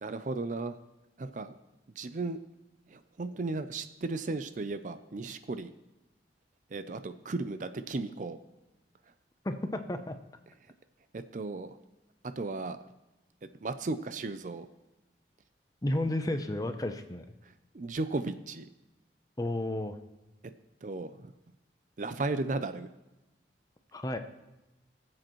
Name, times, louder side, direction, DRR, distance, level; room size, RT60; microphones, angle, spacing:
voice 1, 0.0-0.8 1.2-1.5 2.0-2.4 2.9-5.7 6.7-8.4 11.1-11.8 12.4-12.8 13.6-14.7 17.7-18.7 20.8-21.3 22.0-22.9, right 3 dB, 45° right, 11 dB, 0.5 m, -35 dB
voice 2, 9.4-10.2 15.8-17.3 19.4-20.0 23.9-24.2, left 1 dB, 20° left, 8 dB, 0.6 m, -32 dB
19.0 x 7.7 x 3.1 m, 0.98 s
head